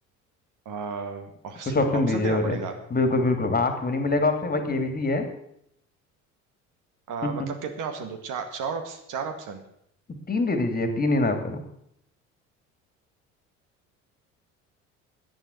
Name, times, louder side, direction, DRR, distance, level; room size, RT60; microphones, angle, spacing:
voice 1, 0.7-2.8 7.1-9.6, right 5 dB, 55° right, 7 dB, 2.0 m, -33 dB
voice 2, 1.7-2.6 2.9-5.3 10.3-11.6, left 2 dB, 25° left, 7 dB, 2.6 m, -24 dB
10.5 x 9.8 x 8.0 m, 0.73 s
hypercardioid pair, 60°, 38 cm